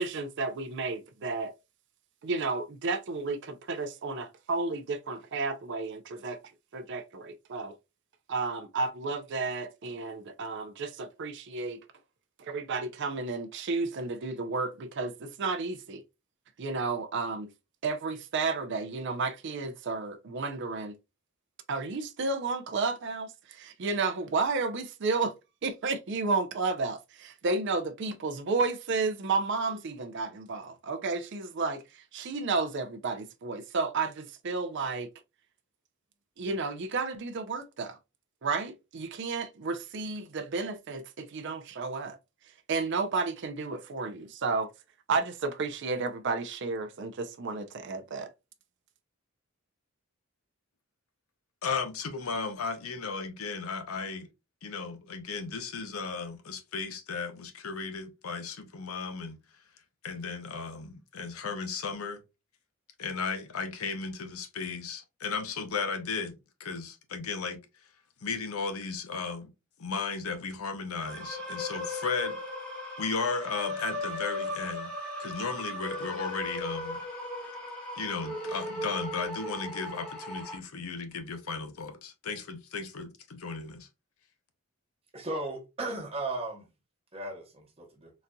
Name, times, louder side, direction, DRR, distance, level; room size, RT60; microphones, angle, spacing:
voice 1, 0.0-1.5 2.2-6.4 6.7-7.7 8.3-11.8 12.4-16.0 16.6-17.5 17.8-21.0 21.7-25.3 25.6-35.1 36.4-38.0 38.4-42.2 42.7-44.7 45.1-48.3, right 3 dB, 55° right, 0.4 m, -32 dB
voice 2, 51.6-54.3 54.6-59.4 60.0-62.2 63.0-67.6 68.2-69.5 69.8-72.4 73.0-74.9 75.2-77.0 78.0-83.9, left 4 dB, 70° left, 0.6 m, -35 dB
sound 1, 71.0-80.6, left 1 dB, 5° left, 1.0 m, -37 dB
voice 3, 85.1-86.6 87.1-88.1, right 2 dB, 25° right, 0.9 m, -36 dB
4.0 x 2.6 x 2.2 m
head